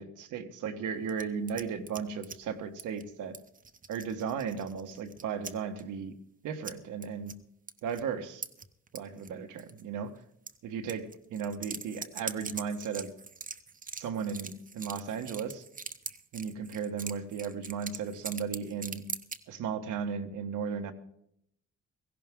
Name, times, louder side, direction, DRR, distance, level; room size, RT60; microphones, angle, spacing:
voice 1, 0.0-3.4 3.9-6.1 6.4-7.3 7.8-8.4 8.9-10.1 10.6-13.1 13.9-15.6 16.3-19.0 19.5-20.9, right 6 dB, 85° right, 6 dB, 1.5 m, -35 dB
sound 1, 1.1-2.4 2.8-3.1 3.3-5.5 5.8-5.9 6.6-6.7 7.0-7.3 7.7-8.0 8.4-9.3 9.6-9.8 10.5-10.6 10.9-19.4, right 5 dB, 25° right, 1.0 m, -42 dB
17.0 x 15.5 x 3.7 m, 0.73 s
cardioid pair, 90°, 30 cm